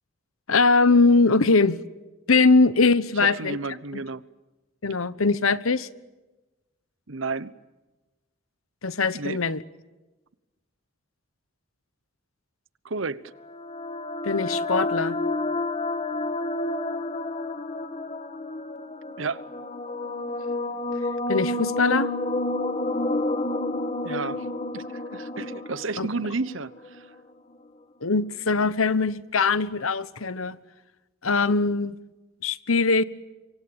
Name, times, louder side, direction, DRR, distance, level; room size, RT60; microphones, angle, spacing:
voice 1, 0.5-1.8 2.3-3.6 4.8-5.9 8.8-9.6 14.2-15.2 21.3-22.1 26.0-26.1 28.0-30.6 31.2-32.0 32.4-33.0, left 3 dB, 85° left, 1.2 m, -21 dB
voice 2, 3.2-4.2 7.1-7.5 9.1-9.4 12.8-13.2 19.2-19.4 24.0-24.5 24.7-27.1, right 3 dB, 70° right, 1.0 m, -31 dB
sound 1, 13.4-27.0, left 2 dB, 30° left, 1.6 m, -30 dB
27.0 x 24.0 x 8.8 m
head